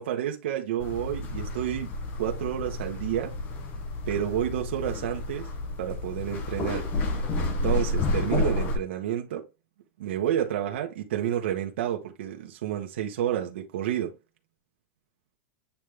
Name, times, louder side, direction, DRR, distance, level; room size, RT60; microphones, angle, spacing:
voice 1, 0.0-1.9 2.2-3.3 4.1-5.5 5.8-6.8 7.4-9.4 10.0-14.2, right 11 dB, 55° right, 1.2 m, -30 dB
sound 1, 0.8-8.8, left 2 dB, 25° left, 0.9 m, -30 dB
8.6 x 3.2 x 3.5 m
supercardioid pair, 180°, 7 cm